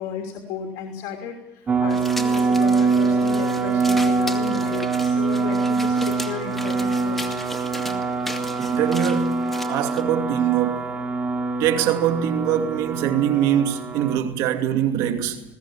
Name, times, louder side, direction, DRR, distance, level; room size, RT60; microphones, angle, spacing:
voice 1, 0.0-7.4, left 7 dB, 65° left, 3.0 m, -34 dB
sound 1, 1.7-14.2, right 4 dB, 25° right, 2.5 m, -24 dB
sound 2, 1.9-10.0, left 1 dB, 5° left, 2.2 m, -37 dB
voice 2, 8.6-9.4 9.7-11.0 11.6-15.4, right 10 dB, 75° right, 2.7 m, -23 dB
21.0 x 18.0 x 8.7 m
cardioid pair, 130°, 6 cm